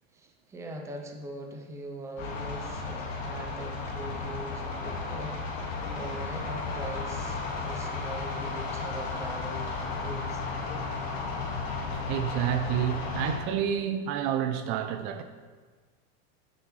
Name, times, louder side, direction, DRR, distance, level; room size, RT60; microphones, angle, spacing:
voice 1, 0.1-9.7 10.0-10.5, right 1 dB, 10° right, 0.6 m, -41 dB
sound 1, 2.2-13.4, left 4 dB, 70° left, 1.9 m, -34 dB
voice 2, 12.1-15.2, right 10 dB, 50° right, 0.5 m, -29 dB
9.3 x 6.9 x 3.2 m
supercardioid pair, 150°, 32 cm